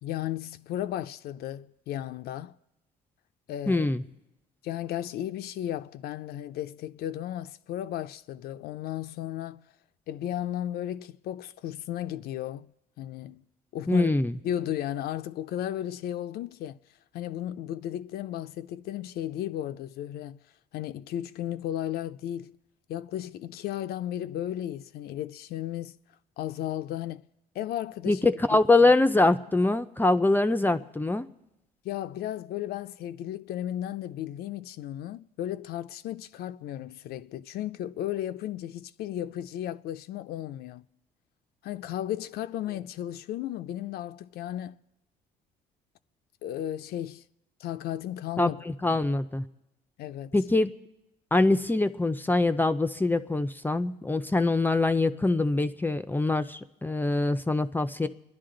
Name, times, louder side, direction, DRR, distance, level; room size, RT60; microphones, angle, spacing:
voice 1, 0.0-2.5 3.5-3.9 4.6-9.6 10.1-12.7 13.0-13.4 13.7-14.1 14.4-16.8 17.1-20.4 20.7-22.6 22.9-26.0 26.4-27.3 27.5-28.6 28.8-28.9 31.8-40.8 41.6-44.8 46.4-47.2 47.6-48.6 48.9-49.0 50.0-50.4, left 12 dB, 70° left, 0.5 m, -34 dB
voice 2, 3.7-4.0 13.9-14.3 28.1-31.3 48.4-48.5 48.8-49.5 50.3-50.7 51.3-58.1, left 2 dB, 10° left, 0.5 m, -24 dB
29.0 x 11.0 x 3.8 m
cardioid pair, 110°, 17 cm